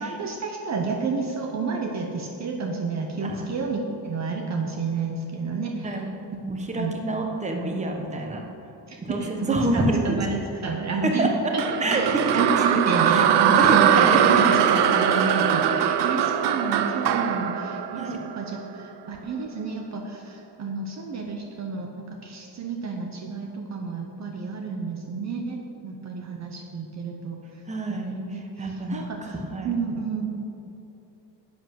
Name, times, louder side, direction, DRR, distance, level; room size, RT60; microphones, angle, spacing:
voice 1, 0.0-5.9 6.7-7.0 8.9-27.4 27.9-28.4 28.7-29.4 29.6-30.4, right 4 dB, 40° right, 2 dB, 0.9 m, -30 dB
voice 2, 5.8-6.2 6.4-8.4 9.0-10.2 11.0-11.3 11.6-12.4 12.7-12.8 13.1-14.4 17.9-18.2 27.7-29.8, right 2 dB, 15° right, 2 dB, 1.1 m, -27 dB
sound 1, 11.6-18.8, right 9 dB, 75° right, 0.8 m, -21 dB
10.5 x 8.0 x 6.4 m, 2.8 s
cardioid pair, 160°, 41 cm